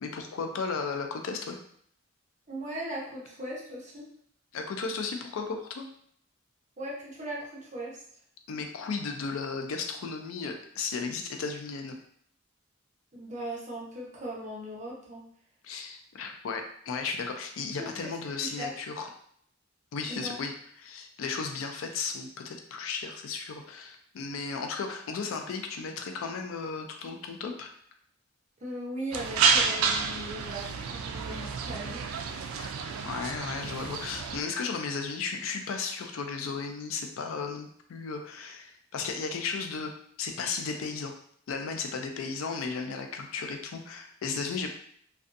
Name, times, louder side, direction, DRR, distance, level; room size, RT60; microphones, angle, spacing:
voice 1, 0.0-1.6 4.5-5.9 8.5-12.0 15.6-19.1 19.9-20.5 20.8-27.7 32.6-32.7 33.0-39.9 40.2-41.1 41.5-44.7, left 4 dB, 75° left, 5 dB, 0.4 m, -35 dB
voice 2, 2.5-4.0 6.8-8.0 13.1-15.2 17.8-18.1 18.4-18.7 20.1-20.4 28.6-32.0, right 1 dB, 35° right, -5 dB, 0.8 m, -38 dB
sound 1, 29.1-34.4, right 5 dB, 85° right, 0.3 m, -29 dB
2.5 x 2.3 x 2.5 m, 0.64 s
head